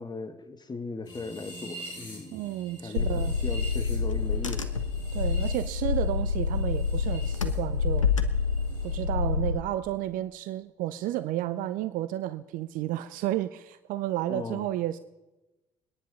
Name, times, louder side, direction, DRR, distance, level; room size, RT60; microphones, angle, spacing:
voice 1, 0.0-2.3 2.8-4.6 14.3-14.7, left 3 dB, 25° left, 9 dB, 1.9 m, -38 dB
sound 1, 1.0-7.6 7.8-9.0, right 1 dB, 70° left, 7.4 m, -46 dB
voice 2, 2.3-3.4 5.1-8.1 8.8-15.0, right 14 dB, 60° right, 13 dB, 0.6 m, -32 dB
Car / Engine, 3.0-9.6, left 5 dB, 90° left, 0.8 m, -27 dB
24.0 x 10.0 x 5.6 m, 1.0 s
figure-of-eight pair, 50°, 16 cm